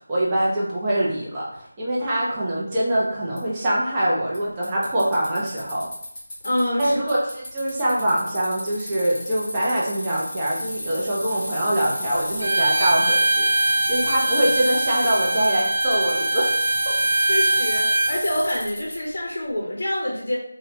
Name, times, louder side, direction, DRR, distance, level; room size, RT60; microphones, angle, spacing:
voice 1, 0.1-5.9 6.8-13.5 13.9-16.5 16.9-17.0, right 1 dB, 15° right, -7 dB, 0.6 m, -24 dB
Bicycle, 3.4-3.5 4.3-4.4 4.6-6.8 7.1-19.0, left 1 dB, 10° left, 1.0 m, -31 dB
voice 2, 6.4-7.2 17.3-20.4, left 1 dB, 50° left, -3 dB, 0.7 m, -26 dB
Bowed string instrument, 12.4-18.1, right 2 dB, 90° right, 0.5 m, -22 dB
3.7 x 2.2 x 2.7 m, 0.73 s
figure-of-eight pair, 175°, 0 cm